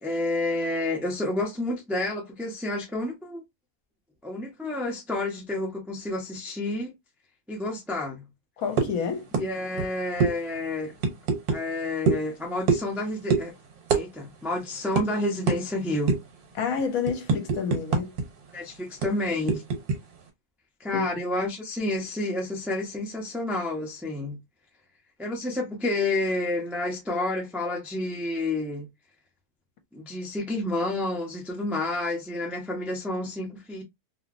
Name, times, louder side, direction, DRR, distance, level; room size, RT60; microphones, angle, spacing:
voice 1, 0.0-3.4 4.2-6.9 7.5-8.3 9.3-10.9 11.5-13.5 13.9-16.2 18.5-19.6 20.8-24.4 25.2-28.9 29.9-33.8, left 2 dB, ahead, 0.3 m, -29 dB
voice 2, 8.6-9.2 16.5-18.1 20.9-21.1, left 6 dB, 65° left, 1.1 m, -29 dB
sound 1, 8.8-9.0 9.3-9.5 9.7-9.9 10.2-10.3 11.0-11.6 12.1-12.3 12.7-13.0 13.3-13.5 13.9-14.0 14.3-14.5 15.0-15.1 15.5-15.6 16.1-16.3 16.8-18.2 18.5-18.6 19.0-20.0, right 5 dB, 70° right, 1.4 m, -24 dB
2.9 x 2.8 x 2.5 m
omnidirectional pair, 1.7 m